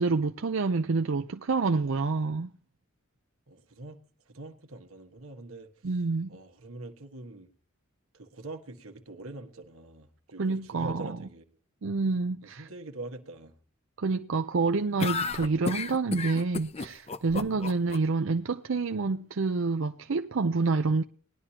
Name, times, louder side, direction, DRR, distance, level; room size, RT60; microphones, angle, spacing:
voice 1, 0.0-2.5 5.8-6.3 10.4-11.2 11.8-12.6 14.0-21.0, right 4 dB, 65° right, 0.5 m, -28 dB
voice 2, 3.5-6.0 6.3-7.5 8.1-11.6 12.4-13.5 17.3-17.6, right 2 dB, 90° right, 1.5 m, -44 dB
sound 1, 15.0-18.0, left 4 dB, 30° left, 0.6 m, -32 dB
19.5 x 11.5 x 2.9 m
head